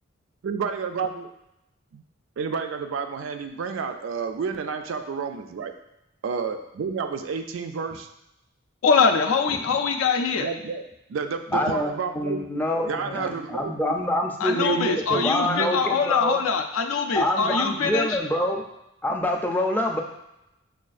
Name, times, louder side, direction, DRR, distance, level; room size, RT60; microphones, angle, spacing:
voice 1, 0.4-1.3 1.9-2.0 2.4-5.7 6.2-8.1 10.4-10.8 11.1-13.9 14.5-15.7, right 5 dB, 70° right, 7 dB, 0.3 m, -30 dB
voice 2, 8.8-10.5 14.4-18.2, left 5 dB, 75° left, 5 dB, 0.4 m, -23 dB
voice 3, 11.5-16.4 17.1-18.6 19.0-20.0, left 1 dB, 10° left, 1 dB, 0.4 m, -26 dB
6.1 x 2.3 x 2.4 m, 0.87 s
head